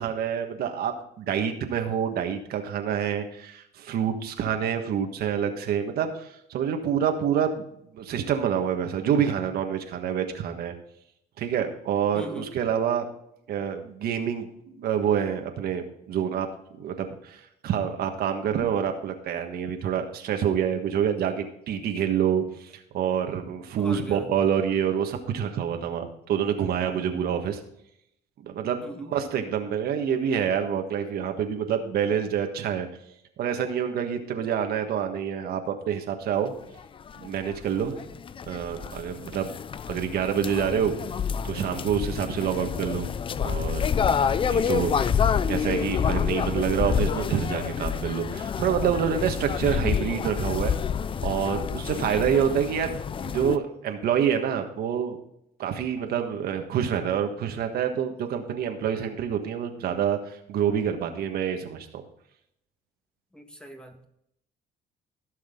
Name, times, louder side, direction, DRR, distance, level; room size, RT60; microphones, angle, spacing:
voice 1, 0.0-7.6 7.9-10.7 11.4-13.1 13.5-14.5 14.8-16.5 16.8-27.6 28.4-32.9 33.4-36.5 37.2-37.9 38.5-39.5 39.9-40.9 41.4-43.1 43.4-43.8 44.4-45.1 45.5-50.7 51.2-52.9 53.2-55.2 55.6-62.0, right 8 dB, 65° right, 5 dB, 1.5 m, -27 dB
voice 2, 12.1-12.5 23.8-24.3 28.8-29.1 37.8-38.1 44.6-45.2 63.3-64.0, right 1 dB, 5° left, 4 dB, 1.6 m, -41 dB
sound 1, 36.8-36.9 37.1-53.6, left 7 dB, 30° left, 0.5 m, -28 dB
15.5 x 6.5 x 3.8 m, 0.75 s
cardioid pair, 110°, 17 cm